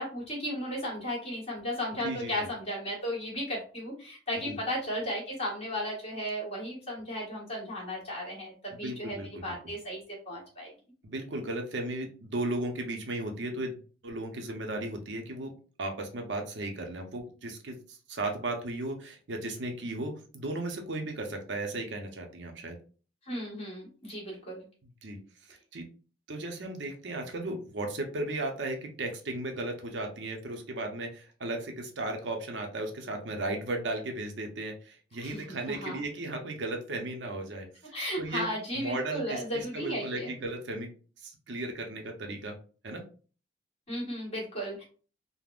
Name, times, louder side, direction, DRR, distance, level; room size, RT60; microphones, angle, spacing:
voice 1, 0.0-10.7 23.2-24.6 35.2-36.0 37.9-40.4 43.9-44.8, equal, 35° left, -4 dB, 1.4 m, -35 dB
voice 2, 2.0-2.5 4.4-4.6 8.7-9.5 11.0-15.5 15.8-22.8 25.0-25.2 25.5-25.9 26.3-38.5 38.7-40.9 41.2-42.5 42.8-43.0, right 2 dB, 70° right, 3 dB, 0.6 m, -35 dB
3.5 x 2.0 x 2.3 m, 0.38 s
head